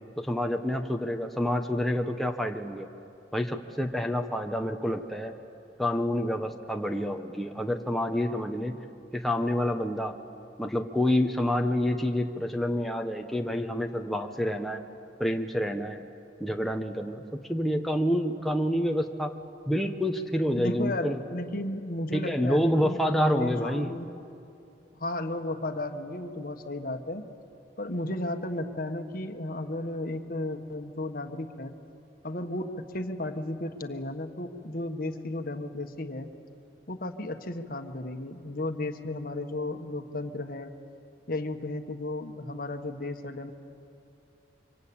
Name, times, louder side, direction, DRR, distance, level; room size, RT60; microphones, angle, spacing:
voice 1, 0.2-2.9 3.3-5.3 5.8-8.7 9.1-10.2 10.6-14.8 15.2-16.0 16.4-19.4 19.7-21.2 22.1-24.0, equal, ahead, 3 dB, 0.9 m, -28 dB
voice 2, 20.6-24.1 25.0-27.2 27.8-31.7 32.2-32.7 32.9-36.3 36.9-40.7 41.3-43.5, left 1 dB, 55° left, 7 dB, 1.4 m, -34 dB
26.5 x 24.5 x 8.7 m, 2.7 s
head